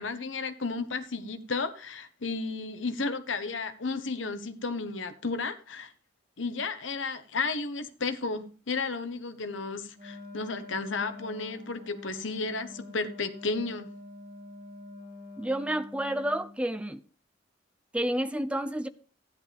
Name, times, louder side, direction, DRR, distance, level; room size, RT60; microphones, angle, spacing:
voice 1, 0.0-5.9 6.4-13.9, left 4 dB, 80° left, 1.1 m, -33 dB
Wind instrument woodwind instrument, 9.9-16.6, left 2 dB, 50° right, 4.0 m, -46 dB
voice 2, 15.4-17.0 17.9-18.9, right 1 dB, 5° right, 0.5 m, -30 dB
13.5 x 10.5 x 3.4 m
head